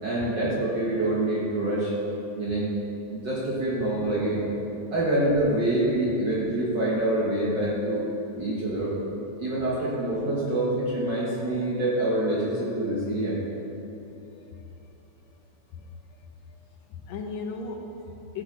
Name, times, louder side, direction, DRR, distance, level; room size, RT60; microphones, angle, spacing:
voice 1, 0.0-1.9 2.3-2.7 3.1-4.4 4.9-8.1 8.4-9.0 9.4-13.4, right 1 dB, 55° right, -6 dB, 1.3 m, -26 dB
voice 2, 13.9-14.7 15.7-16.6 16.9-18.4, left 4 dB, 75° left, 3 dB, 1.8 m, -39 dB
14.5 x 7.9 x 3.2 m, 3.0 s
omnidirectional pair, 3.4 m